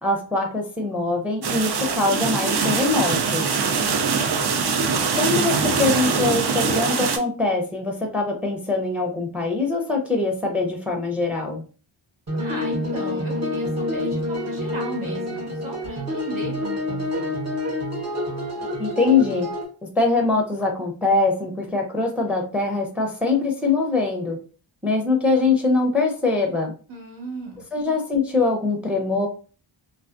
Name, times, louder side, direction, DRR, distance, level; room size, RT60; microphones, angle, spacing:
voice 1, 0.0-3.5 5.1-11.6 18.8-19.5 19.8-24.4 24.8-26.7 27.7-29.3, left 3 dB, 5° right, 3 dB, 0.5 m, -23 dB
sound 1, 1.4-7.2, right 5 dB, 55° right, 0.5 m, -23 dB
voice 2, 3.8-4.4 12.4-17.5 26.9-27.6, right 2 dB, 75° right, 0 dB, 1.3 m, -36 dB
sound 2, 12.3-19.6, left 1 dB, 35° right, 0.9 m, -28 dB
2.5 x 2.4 x 2.4 m, 0.37 s
wide cardioid pair, 60°, 49 cm